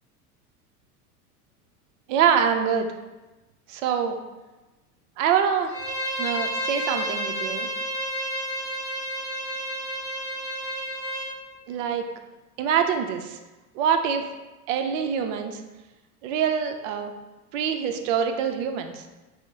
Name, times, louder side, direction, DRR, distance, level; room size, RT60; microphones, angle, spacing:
voice 1, 2.1-2.9 3.7-4.2 5.2-5.8 6.2-7.7 11.7-12.1 12.6-13.4 13.7-14.3 14.7-15.6 16.2-17.1 17.5-19.1, right 7 dB, 55° right, 6 dB, 0.6 m, -25 dB
Bowed string instrument, 5.7-11.3, equal, 10° right, 0.4 m, -30 dB
5.8 x 2.1 x 2.7 m, 1.1 s
hypercardioid pair, 85°, 45 cm